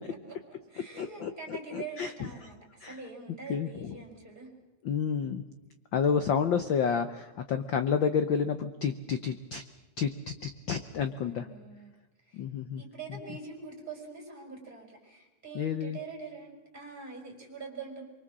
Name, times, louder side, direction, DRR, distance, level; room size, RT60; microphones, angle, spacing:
voice 1, 0.3-4.5 11.2-11.9 12.2-12.4 12.8-18.0, right 4 dB, 15° right, 0 dB, 5.3 m, -44 dB
voice 2, 1.0-2.1 2.8-2.9 3.5-4.0 4.8-5.4 5.9-9.6 10.0-11.4 12.3-12.8 15.5-16.0, left 6 dB, 85° left, 9 dB, 1.0 m, -30 dB
24.0 x 23.5 x 7.5 m, 1.1 s
omnidirectional pair, 3.4 m